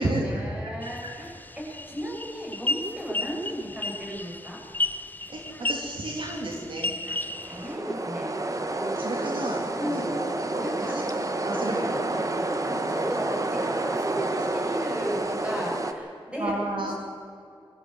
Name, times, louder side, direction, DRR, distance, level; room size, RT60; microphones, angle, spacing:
voice 1, 0.0-4.6 7.0-8.3 9.7-10.1 10.6-11.0 12.5-16.9, equal, 10° right, -3 dB, 7.3 m, -35 dB
sound 1, 0.8-7.7, left 2 dB, 20° left, 0.9 m, -33 dB
voice 2, 5.3-6.9 8.9-9.6 9.9-10.3 10.5-11.0 11.4-12.2 16.4-16.9, right 1 dB, 70° right, 0 dB, 3.1 m, -31 dB
sound 2, 7.2-15.9, right 2 dB, 40° right, 1.5 m, -29 dB
23.0 x 14.5 x 7.9 m, 2.5 s
wide cardioid pair, 85°, 9 cm